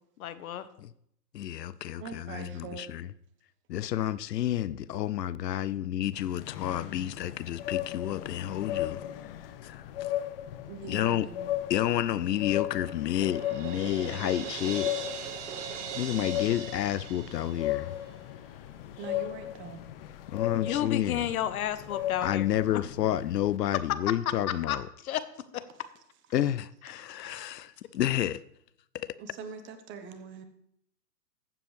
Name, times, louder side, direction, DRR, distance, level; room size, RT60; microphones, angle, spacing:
voice 1, 0.2-0.7 20.5-22.8 24.5-24.8 25.0-25.2 25.5-25.6 26.8-27.5, left 11 dB, 60° left, 1.0 m, -33 dB
voice 2, 1.3-3.1 3.7-9.8 10.9-11.3 11.7-14.9 16.0-18.0 20.3-21.2 22.2-24.9 26.3-28.4 28.9-29.1, left 12 dB, 80° left, 0.6 m, -30 dB
voice 3, 2.0-2.9 10.7-11.5 19.0-19.8 27.7-27.8 29.0-30.4, right 5 dB, 25° right, 1.1 m, -43 dB
sound 1, 6.1-23.6, left 13 dB, 35° left, 0.6 m, -37 dB
Crash cymbal, 13.2-18.1, right 8 dB, 45° right, 1.5 m, -40 dB
14.5 x 7.7 x 3.2 m
hypercardioid pair, 120°, 48 cm